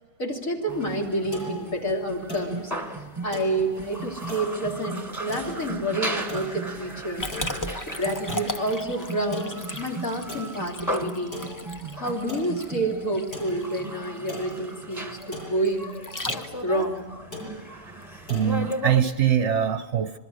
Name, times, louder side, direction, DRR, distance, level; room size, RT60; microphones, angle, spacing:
voice 1, 0.2-2.7 3.2-7.3 7.9-11.4 12.0-16.0 16.6-17.1, right 1 dB, 60° left, 0 dB, 3.5 m, -28 dB
sound 1, 0.6-19.3, left 2 dB, 85° left, 8.2 m, -43 dB
sound 2, 0.7-19.0, right 1 dB, 10° right, 1.6 m, -36 dB
Liquid, 7.2-16.8, left 1 dB, 20° left, 0.5 m, -36 dB
voice 2, 18.3-20.2, right 9 dB, 55° right, 10 dB, 1.0 m, -23 dB
26.5 x 21.5 x 6.5 m, 1.4 s
omnidirectional pair, 1.6 m